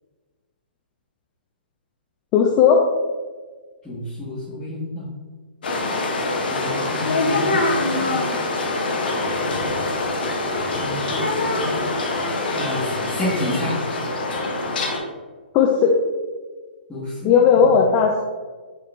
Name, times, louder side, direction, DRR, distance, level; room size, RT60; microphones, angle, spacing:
voice 1, 2.3-2.8 15.5-15.9 17.2-18.2, left 6 dB, 30° left, 0 dB, 0.4 m, -15 dB
voice 2, 3.8-5.1 6.5-8.2 10.8-11.8 12.5-13.8 16.9-18.0, left 1 dB, 10° left, -13 dB, 1.2 m, -30 dB
sound 1, 5.6-15.0, left 2 dB, 60° left, 0.7 m, -24 dB
4.8 x 3.0 x 3.3 m, 1.4 s
figure-of-eight pair, 120°, 6 cm